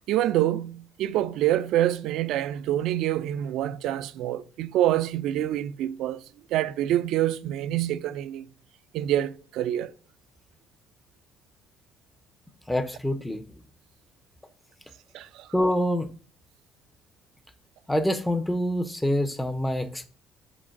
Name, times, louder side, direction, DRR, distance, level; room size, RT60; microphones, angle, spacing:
voice 1, 0.1-6.2 6.5-8.4 8.9-9.9 15.1-15.5, right 12 dB, 75° right, 0.4 m, -26 dB
voice 2, 12.7-13.5 15.5-16.1 17.9-20.0, equal, 5° left, 0.5 m, -26 dB
5.2 x 3.9 x 5.7 m
cardioid pair, 125°, 0 cm